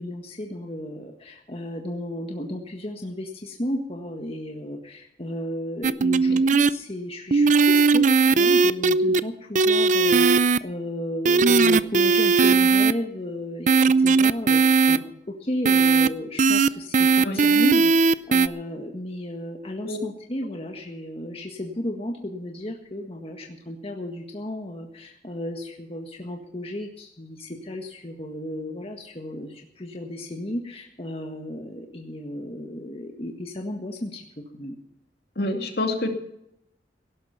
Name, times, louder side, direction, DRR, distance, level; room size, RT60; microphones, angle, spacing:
voice 1, 0.0-34.8, left 1 dB, 35° left, 2 dB, 1.7 m, -33 dB
sound 1, 5.8-6.7 7.3-9.2 9.6-10.6 11.3-12.9 13.7-15.0 15.7-16.1 16.4-16.7 16.9-18.5, right 4 dB, 45° right, 0.5 m, -18 dB
voice 2, 35.4-36.1, left 1 dB, 60° left, 4 dB, 2.6 m, -26 dB
17.5 x 12.0 x 5.8 m, 0.80 s
head